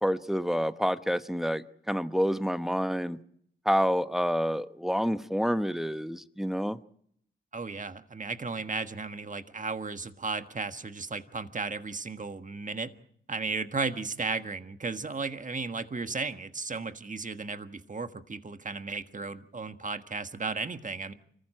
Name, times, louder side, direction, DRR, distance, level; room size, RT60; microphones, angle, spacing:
voice 1, 0.0-3.2 3.6-6.8, equal, ahead, 11 dB, 1.0 m, -28 dB
voice 2, 7.5-12.9 13.3-21.1, right 4 dB, 35° right, 9 dB, 1.5 m, -35 dB
25.0 x 15.0 x 7.6 m, 0.67 s
cardioid pair, 50°, 21 cm